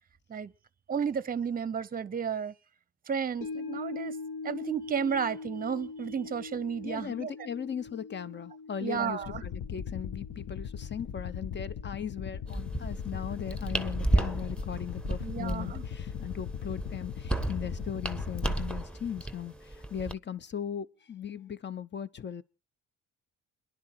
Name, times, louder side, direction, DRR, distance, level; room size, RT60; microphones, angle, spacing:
voice 1, 0.9-2.5 3.1-4.1 4.4-7.3 8.8-9.4 15.2-15.8, right 7 dB, 30° right, 0.7 m, -32 dB
sound 1, 3.4-13.8 14.1-14.2, left 4 dB, 80° left, 3.9 m, -43 dB
voice 2, 6.8-22.4, left 8 dB, 35° left, 0.9 m, -38 dB
sound 2, 9.2-18.7, left 8 dB, 60° left, 1.3 m, -39 dB
sound 3, 12.5-20.1, right 1 dB, 5° left, 1.1 m, -33 dB
29.0 x 11.0 x 4.5 m
cardioid pair, 90°, 30 cm